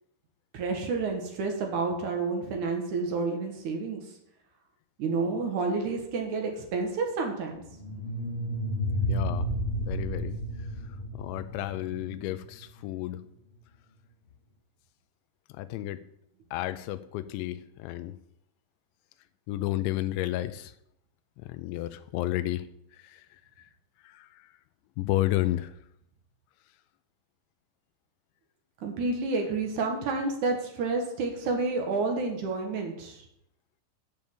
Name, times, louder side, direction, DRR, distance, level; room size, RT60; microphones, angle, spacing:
voice 1, 0.5-4.0 5.0-7.6 28.8-33.2, right 3 dB, 60° right, 2 dB, 2.3 m, -29 dB
sound 1, 7.6-12.7, equal, 15° left, 3.7 m, -32 dB
voice 2, 9.1-9.5 9.8-13.3 15.5-16.0 16.5-18.2 19.5-20.7 21.4-23.7 24.0-24.5 25.0-25.7, left 15 dB, 85° left, 11 dB, 3.0 m, -32 dB
8.4 x 7.2 x 7.7 m, 0.74 s
omnidirectional pair, 5.3 m